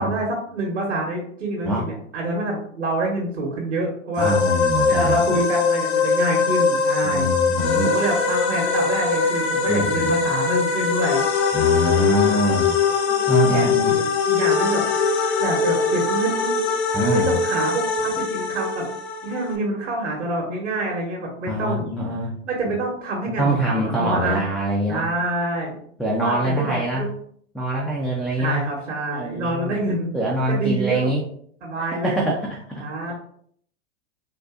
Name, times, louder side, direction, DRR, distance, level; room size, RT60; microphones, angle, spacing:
voice 1, 0.0-4.4 4.9-7.3 7.8-11.2 12.1-12.4 13.0-14.8 15.4-16.6 17.1-18.9 19.2-21.9 22.4-24.4 24.9-25.7 26.2-27.1 28.4-30.2 30.5-31.1 31.6-32.2 32.8-33.1, right 2 dB, 90° right, -2 dB, 1.0 m, -27 dB
sound 1, 4.2-19.6, left 5 dB, 65° left, 0.7 m, -21 dB
voice 2, 4.2-5.4 7.0-7.9 9.7-10.1 11.5-12.7 13.3-13.9 16.9-17.4 21.5-22.3 23.4-25.1 26.0-27.1 27.5-28.6 29.1-29.8 30.1-31.2 31.8-33.1, right 1 dB, ahead, -3 dB, 0.3 m, -24 dB
3.7 x 2.6 x 2.4 m, 0.62 s
hypercardioid pair, 95°, 36 cm